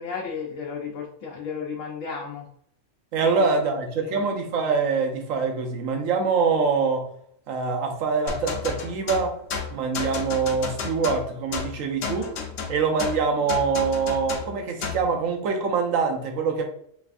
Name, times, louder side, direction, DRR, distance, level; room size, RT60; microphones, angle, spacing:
voice 1, 0.0-2.5 3.2-3.7 4.0-4.2, left 5 dB, 90° left, -1 dB, 1.0 m, -34 dB
voice 2, 3.1-7.1 7.5-9.4 9.7-12.3 12.7-16.7, right 5 dB, 90° right, 3 dB, 1.1 m, -24 dB
sound 1, 8.3-15.1, left 5 dB, 65° left, 0.8 m, -32 dB
3.3 x 3.2 x 2.5 m, 0.67 s
omnidirectional pair, 1.3 m